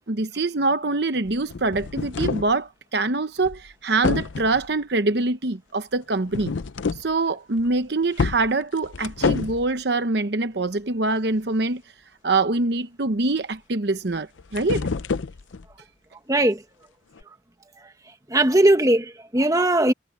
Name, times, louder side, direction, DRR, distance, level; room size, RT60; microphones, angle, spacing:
voice 1, 0.1-6.5 7.0-11.8 12.2-14.9, right 3 dB, 55° right, 0.9 m, -24 dB
sound 1, 1.3-2.5 3.4-3.7 4.0-4.7 6.3-7.1 7.5-7.7 8.2-9.7 14.1-15.7 17.2-17.3, left 4 dB, 75° left, 0.6 m, -28 dB
voice 2, 16.3-16.6 18.3-19.9, right 1 dB, 15° right, 1.3 m, -19 dB
head